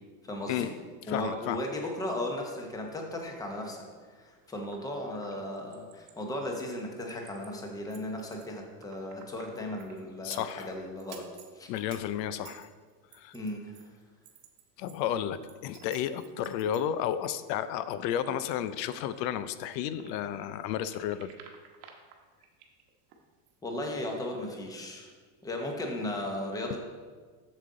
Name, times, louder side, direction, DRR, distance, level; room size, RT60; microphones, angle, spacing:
voice 1, 0.2-0.7 1.1-11.3 11.5-11.7 13.3-13.8 23.6-25.1 25.4-26.8, left 1 dB, 5° left, 2 dB, 0.7 m, -36 dB
voice 2, 1.1-1.6 10.2-10.7 11.7-12.7 13.1-13.3 14.8-21.3, left 10 dB, 85° left, 13 dB, 0.6 m, -32 dB
sound 1, 4.4-6.2 6.6-7.6 7.9-10.7 11.0-15.0 15.3-20.6 20.8-23.2 23.5-23.6, right 8 dB, 80° right, 1.2 m, -54 dB
7.4 x 6.9 x 3.7 m, 1.5 s
cardioid pair, 155°, 49 cm